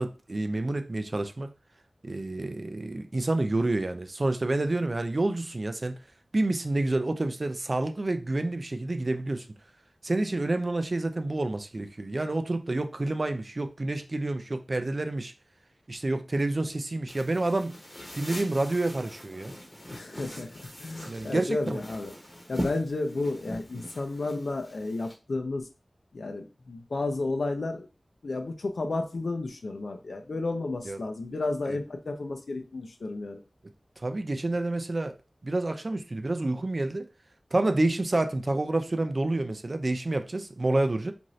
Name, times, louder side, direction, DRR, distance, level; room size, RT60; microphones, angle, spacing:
voice 1, 0.0-1.5 2.0-6.0 6.3-9.5 10.0-15.3 15.9-17.8 18.1-19.5 21.0-21.8 30.9-31.0 31.7-31.8 34.0-35.2 35.4-37.1 37.5-41.1, right 2 dB, 45° right, 0.4 m, -28 dB
sound 1, 17.1-25.1, equal, 25° left, 0.9 m, -41 dB
voice 2, 19.9-20.5 20.8-22.1 22.5-25.7 26.1-27.9 28.2-33.4, left 2 dB, 80° left, 0.5 m, -32 dB
2.6 x 2.6 x 3.1 m
wide cardioid pair, 65°, 0 cm